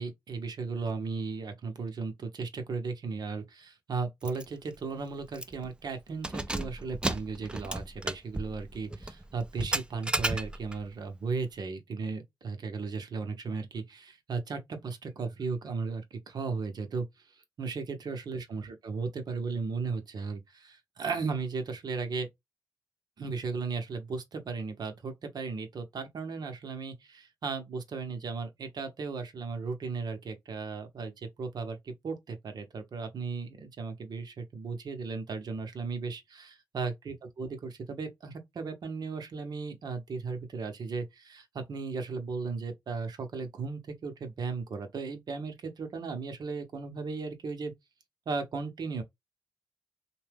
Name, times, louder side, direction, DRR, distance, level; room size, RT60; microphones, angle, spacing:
voice 1, 0.0-17.1 17.3-22.3 23.2-47.7 48.3-49.0, right 4 dB, 65° right, 0.8 m, -36 dB
Keys jangling, 4.2-4.4 4.8-4.9 5.3-5.7 6.1-10.9, right 1 dB, 10° right, 0.4 m, -34 dB
2.7 x 2.2 x 3.3 m
cardioid pair, 55°, 8 cm